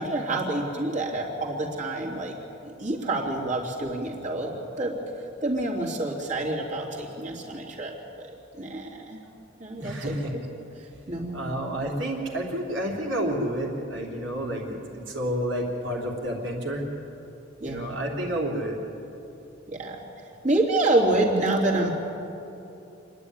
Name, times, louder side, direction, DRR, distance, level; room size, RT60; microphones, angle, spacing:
voice 1, 0.0-2.4 2.6-4.9 5.4-9.2 9.6-10.1 10.8-11.6 17.6-17.9 19.7-20.0 20.4-21.9, right 2 dB, 40° right, -2 dB, 3.2 m, -27 dB
voice 2, 9.8-10.3 11.3-16.9 17.6-18.8, right 1 dB, 65° right, -1 dB, 3.5 m, -30 dB
27.5 x 10.5 x 9.7 m, 2.8 s
head